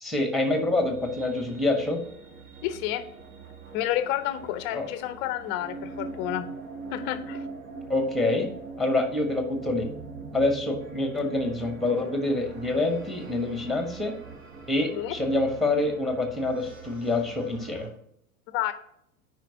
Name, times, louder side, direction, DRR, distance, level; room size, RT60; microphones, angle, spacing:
voice 1, 0.0-2.0 4.7-4.9 7.9-8.5 8.8-9.9 10.3-14.1 14.7-17.9, left 2 dB, ahead, 5 dB, 1.1 m, -26 dB
sound 1, 0.6-17.9, right 4 dB, 60° right, 1.7 m, -42 dB
voice 2, 2.6-3.1 3.7-6.5 6.9-7.4 14.9-15.2 18.5-18.7, left 12 dB, 25° left, 13 dB, 0.5 m, -30 dB
9.0 x 5.0 x 2.8 m, 0.73 s
figure-of-eight pair, 90°, 43 cm